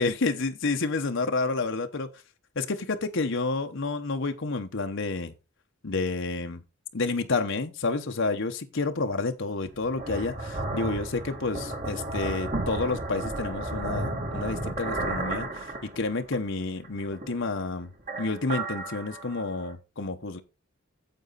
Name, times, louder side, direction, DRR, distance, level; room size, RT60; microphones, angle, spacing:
voice 1, 0.0-2.1 2.6-5.3 5.8-6.6 6.9-17.9 18.2-20.4, left 3 dB, 60° left, 1.0 m, -29 dB
sound 1, 9.6-16.5 16.8-17.7 18.0-19.7, right 2 dB, 40° right, 2.1 m, -33 dB
9.2 x 7.8 x 4.0 m
head